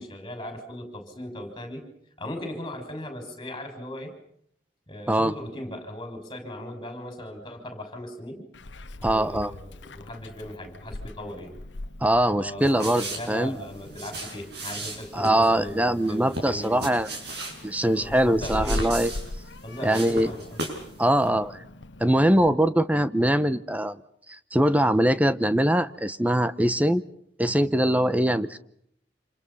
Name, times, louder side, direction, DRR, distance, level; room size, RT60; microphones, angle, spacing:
voice 1, 0.0-1.9 2.2-4.1 4.9-8.5 9.0-11.6 12.4-16.9 17.9-18.9 19.6-20.6, left 1 dB, 25° left, 6 dB, 6.5 m, -38 dB
Meow, 8.5-22.5, left 1 dB, 75° left, 1.0 m, -40 dB
voice 2, 9.0-9.5 12.0-13.6 15.1-17.1 17.6-19.1 19.8-20.3 21.0-21.6 22.0-24.0 24.5-27.0 27.4-28.6, right 1 dB, 10° right, 13 dB, 1.0 m, -22 dB
sound 1, 12.6-20.9 21.2-21.3, right 1 dB, 65° right, 7.6 m, -36 dB
27.5 x 27.5 x 5.7 m, 0.70 s
head